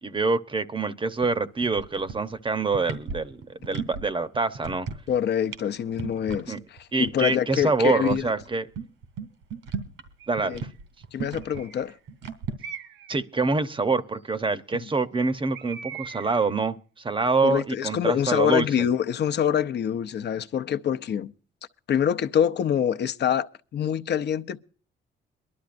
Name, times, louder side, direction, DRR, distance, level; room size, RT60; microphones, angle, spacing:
voice 1, 0.0-4.9 6.5-6.6 6.9-8.7 10.3-10.6 13.1-18.7, right 4 dB, 25° right, 0.8 m, -26 dB
sound 1, 1.2-1.4 1.6-2.3 2.6-4.0 4.3-5.2 5.5-5.7 5.9-6.4 6.8-6.9 7.1-7.2 7.5-10.1 10.4-12.5, right 5 dB, 85° right, 2.5 m, -35 dB
voice 2, 5.1-6.5 7.0-8.3 10.4-10.6 11.1-12.0 14.8-14.9 17.4-21.3 21.9-23.5 23.7-24.6, left 9 dB, 60° left, 0.7 m, -25 dB
Bird, 10.2-10.6 11.4-12.0 12.6-13.2 15.5-16.5, right 7 dB, 70° right, 0.6 m, -41 dB
23.0 x 12.0 x 2.5 m
cardioid pair, 90°, 20 cm